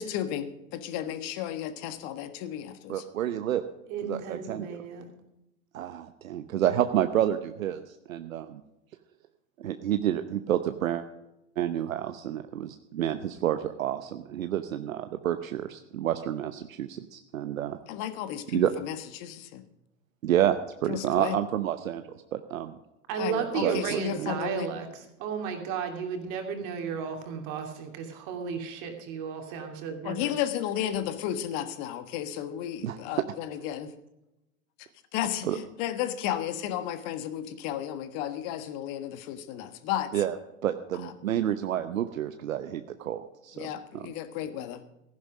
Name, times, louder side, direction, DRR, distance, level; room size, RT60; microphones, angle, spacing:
voice 1, 0.0-3.0 17.9-19.6 20.9-21.4 23.2-24.7 30.0-33.9 35.1-40.2 41.0-41.1 43.5-44.8, left 11 dB, 45° left, 10 dB, 1.5 m, -33 dB
voice 2, 2.9-3.6 4.1-4.7 5.7-7.8 8.1-8.6 9.6-11.0 11.6-17.8 18.5-18.7 20.2-22.0 22.3-22.8 23.6-24.3 32.8-33.0 35.5-35.6 40.1-40.3 40.6-43.7 43.9-44.0, right 11 dB, 75° right, 9 dB, 0.9 m, -29 dB
voice 3, 3.9-5.1 6.6-6.9 23.1-30.3, right 6 dB, 45° right, 4 dB, 2.9 m, -34 dB
15.0 x 11.0 x 5.0 m, 0.89 s
hypercardioid pair, 95°, 41 cm